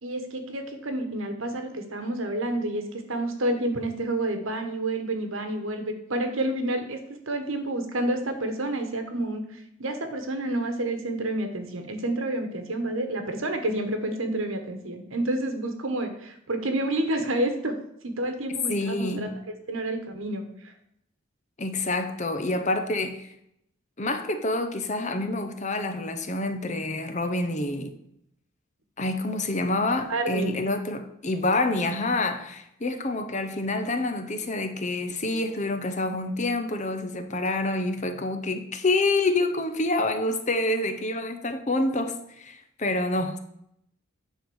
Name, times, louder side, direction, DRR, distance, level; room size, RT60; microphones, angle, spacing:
voice 1, 0.0-5.8 6.1-7.0 7.3-17.7 18.0-19.3 19.7-20.4 30.1-30.6, right 1 dB, 70° right, 1.4 m, -29 dB
voice 2, 18.7-19.3 21.6-23.3 24.0-27.9 29.0-43.4, left 2 dB, 35° left, 0.8 m, -27 dB
9.8 x 3.9 x 7.0 m
head